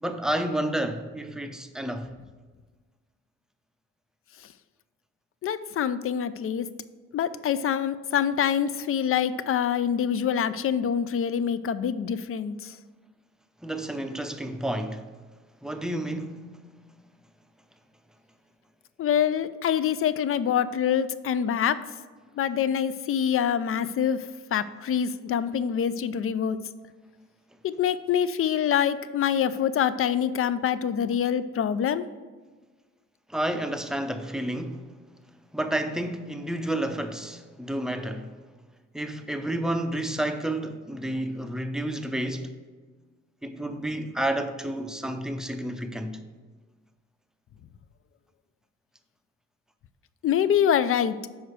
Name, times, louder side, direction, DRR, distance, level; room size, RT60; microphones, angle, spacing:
voice 1, 0.0-2.1 13.6-15.0 15.6-16.6 33.3-34.9 35.5-38.3 38.9-42.5 43.4-46.2, right 1 dB, ahead, 0.6 m, -30 dB
voice 2, 5.4-6.7 7.1-12.7 19.0-21.8 22.4-24.2 24.5-26.6 27.6-32.0 50.2-51.2, left 8 dB, 45° left, 0.5 m, -25 dB
6.4 x 4.9 x 6.4 m
cardioid pair, 90°, 30 cm